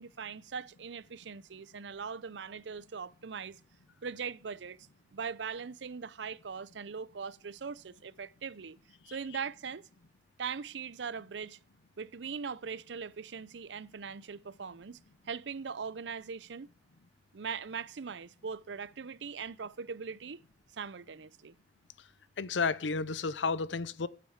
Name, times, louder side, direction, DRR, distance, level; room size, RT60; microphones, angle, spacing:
voice 1, 0.0-3.6 4.0-4.8 5.1-8.8 9.1-9.8 10.4-11.6 12.0-15.0 15.3-16.7 17.3-20.4 20.7-21.6, right 6 dB, 75° right, 0.6 m, -40 dB
voice 2, 22.4-24.1, left 4 dB, 80° left, 0.7 m, -31 dB
10.5 x 8.5 x 8.1 m
head